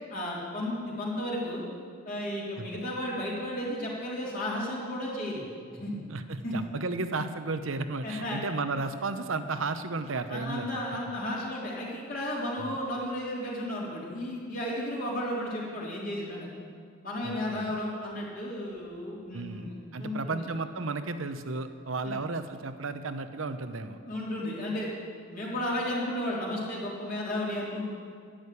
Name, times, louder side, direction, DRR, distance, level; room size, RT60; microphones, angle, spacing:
voice 1, 0.1-1.6 2.1-5.4 5.8-6.0 6.4-6.5 8.0-8.4 10.3-16.5 17.0-20.4 22.0-22.2 24.1-24.9 25.3-27.9, left 1 dB, 45° left, -5 dB, 3.5 m, -33 dB
voice 2, 6.1-10.7 11.0-11.1 12.6-12.8 17.2-17.7 19.3-24.0, right 3 dB, 85° right, 10 dB, 0.9 m, -34 dB
11.0 x 10.5 x 8.4 m, 2.1 s
head